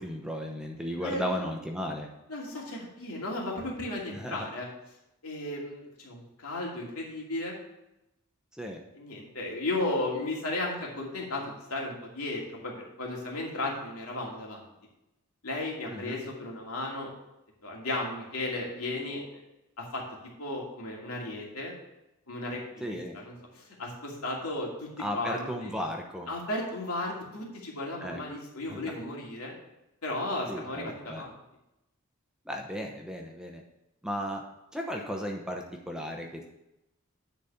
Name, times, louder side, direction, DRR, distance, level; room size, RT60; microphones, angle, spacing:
voice 1, 0.0-2.1 4.1-4.5 8.5-8.8 15.9-16.2 22.8-23.2 25.0-26.3 28.0-28.2 28.7-28.9 30.5-31.2 32.5-33.6 34.0-34.4 34.7-36.5, equal, 5° right, 1 dB, 0.8 m, -35 dB
voice 2, 1.0-1.5 2.3-4.7 5.2-7.6 9.0-14.6 15.4-17.1 17.6-19.4 19.8-20.0 20.4-21.7 22.3-24.9 25.1-25.5 26.3-29.5 30.0-31.3, left 2 dB, 85° left, -2 dB, 2.6 m, -35 dB
10.0 x 4.2 x 7.1 m, 0.90 s
head